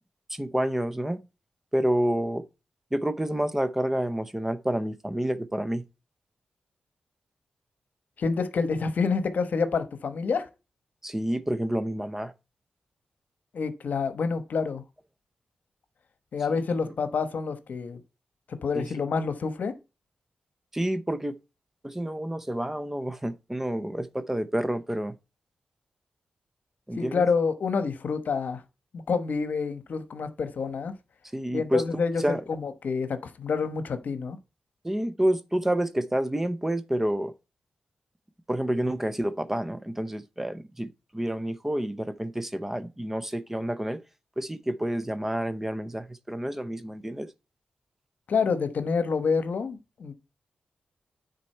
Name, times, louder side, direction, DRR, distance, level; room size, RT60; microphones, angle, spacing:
voice 1, 0.3-1.2 1.7-2.4 2.9-5.8 11.0-12.3 16.5-16.6 18.7-19.0 20.7-21.4 21.8-25.1 26.9-27.2 31.3-31.8 32.2-32.4 34.8-37.3 38.5-40.9 41.1-44.0 44.4-47.3, right 1 dB, 10° right, 0.6 m, -29 dB
voice 2, 8.2-10.5 13.5-14.8 16.3-18.0 18.6-19.7 27.0-28.6 28.9-30.9 31.5-34.4 48.3-50.1, left 5 dB, 70° left, 1.0 m, -28 dB
9.6 x 4.1 x 4.4 m
wide cardioid pair, 105°, 3 cm